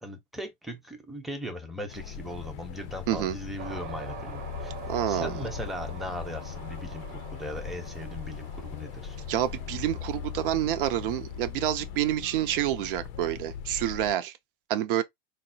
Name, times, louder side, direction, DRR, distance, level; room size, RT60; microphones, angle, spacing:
voice 1, 0.0-4.7 5.1-9.2, left 1 dB, ahead, 0.7 m, -38 dB
sound 1, 1.9-14.1, left 8 dB, 40° left, 0.5 m, -39 dB
sound 2, 3.6-12.1, right 7 dB, 35° right, 0.8 m, -46 dB
voice 2, 4.9-5.4 9.3-14.4 14.7-15.0, right 12 dB, 65° right, 0.6 m, -28 dB
4.0 x 2.0 x 2.6 m
hypercardioid pair, 115°, 29 cm